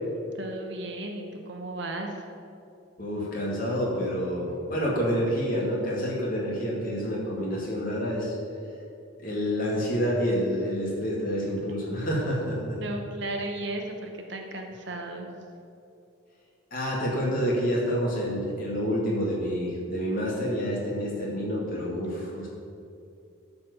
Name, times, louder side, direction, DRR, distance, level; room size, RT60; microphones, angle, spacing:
voice 1, 0.3-2.2 12.7-15.3, right 2 dB, 60° right, 3 dB, 1.1 m, -35 dB
voice 2, 3.0-8.4 9.2-12.8 16.7-22.5, equal, 45° left, -4 dB, 2.4 m, -28 dB
12.0 x 4.3 x 6.9 m, 2.5 s
head